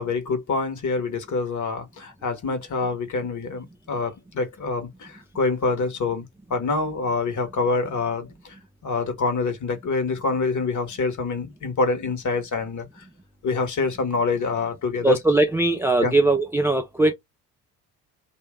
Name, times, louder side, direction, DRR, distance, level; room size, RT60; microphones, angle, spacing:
voice 1, 0.0-6.2 6.5-8.6 8.8-13.0 13.4-15.2 16.0-16.1, left 3 dB, 40° left, 1.5 m, -26 dB
voice 2, 15.0-17.1, right 2 dB, 5° right, 0.5 m, -20 dB
2.9 x 2.7 x 3.6 m
hypercardioid pair, 55°, 47 cm